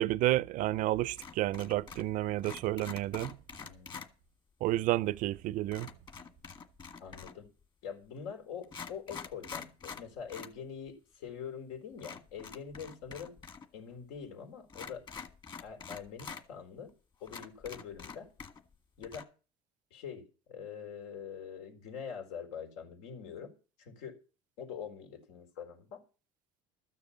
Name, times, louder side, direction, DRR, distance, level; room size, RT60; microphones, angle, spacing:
voice 1, 0.0-3.4 4.6-5.9, right 15 dB, 60° right, 0.6 m, -30 dB
sound 1, 1.2-2.1 2.4-4.1 5.7-7.5 8.2-8.3 8.6-10.6 10.9-11.0 12.0-13.7 13.9-14.0 14.7-16.4 16.9-17.0 17.3-18.8 19.0-19.2, left 6 dB, 30° left, 1.8 m, -46 dB
voice 2, 3.6-4.0 7.0-7.5 7.8-13.4 13.7-15.0 15.6-16.9 17.2-18.3 19.0-19.3 19.9-23.5 23.8-24.2 24.6-26.0, left 7 dB, 85° left, 4.2 m, -44 dB
13.5 x 6.8 x 7.3 m
supercardioid pair, 115°, 15 cm